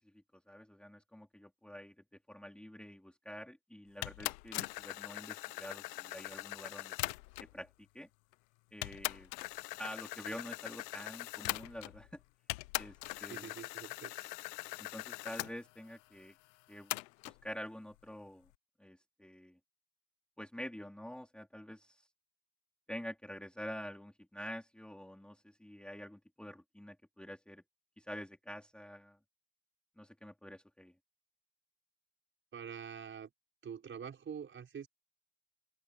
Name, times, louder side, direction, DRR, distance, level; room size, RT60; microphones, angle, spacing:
voice 1, 0.5-1.9 2.3-7.0 7.4-7.7 7.9-8.1 8.7-9.3 9.8-12.2 12.8-12.9 13.2-13.5 14.8-16.3 16.7-16.9 17.2-18.5 18.8-19.6 20.4-22.1 22.9-27.6 28.0-29.2 30.0-30.9, equal, ahead, 3.4 m, -47 dB
sound 1, 4.0-7.6 8.3-8.4 8.8-12.1 12.5-15.5 16.9-17.4, left 23 dB, 85° left, 0.8 m, -41 dB
voice 2, 13.3-14.4 32.5-33.3 33.6-34.9, right 7 dB, 25° right, 6.3 m, -46 dB
open air
cardioid pair, 150°, 48 cm